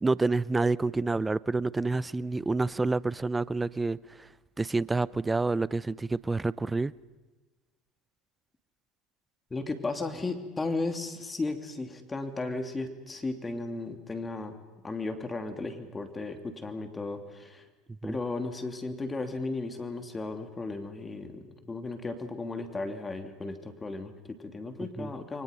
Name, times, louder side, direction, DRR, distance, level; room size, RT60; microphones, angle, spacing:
voice 1, 0.0-4.0 4.6-6.9 18.0-18.2 25.0-25.1, right 3 dB, 15° right, 0.7 m, -28 dB
voice 2, 9.5-14.6 14.8-17.7 18.0-25.4, left 3 dB, 20° left, 3.1 m, -35 dB
29.5 x 23.5 x 5.5 m
hypercardioid pair, 90°, 0 cm